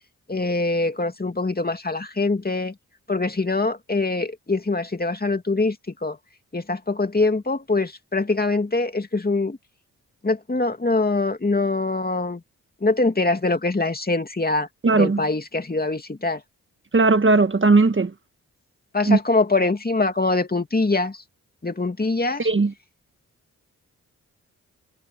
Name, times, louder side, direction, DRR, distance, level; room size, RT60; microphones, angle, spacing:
voice 1, 0.3-2.7 3.1-5.8 6.0-6.2 6.5-9.6 10.2-12.4 12.8-14.7 14.9-16.4 18.9-21.2 21.6-22.4, left 3 dB, 25° left, 2.6 m, -23 dB
voice 2, 14.8-15.2 16.9-18.1 19.1-19.2 22.4-22.7, right 3 dB, 35° right, 1.5 m, -17 dB
supercardioid pair, 45°, 34 cm